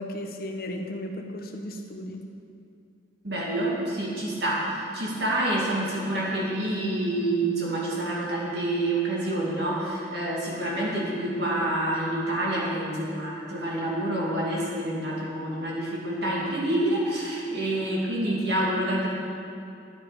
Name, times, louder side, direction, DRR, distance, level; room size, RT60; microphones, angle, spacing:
voice 1, 0.0-2.2, left 1 dB, 55° left, 2 dB, 1.1 m, -35 dB
voice 2, 3.2-19.1, right 1 dB, 65° right, -5 dB, 2.4 m, -27 dB
11.0 x 9.6 x 5.2 m, 2.5 s
head